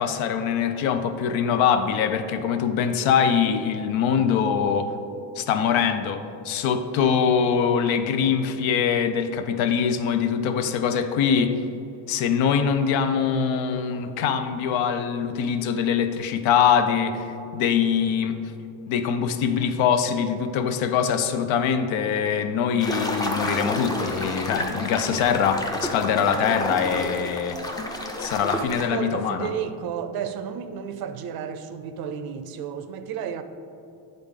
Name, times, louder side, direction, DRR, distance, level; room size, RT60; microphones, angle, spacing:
voice 1, 0.0-4.9 5.4-11.6 12.1-18.4 18.9-27.6 28.2-29.5, left 7 dB, 85° left, 0.7 m, -23 dB
sound 1, 22.8-28.9, left 1 dB, 10° left, 0.4 m, -30 dB
voice 2, 28.9-33.4, right 8 dB, 55° right, 0.5 m, -32 dB
9.7 x 3.9 x 3.7 m
cardioid pair, 140°, 46 cm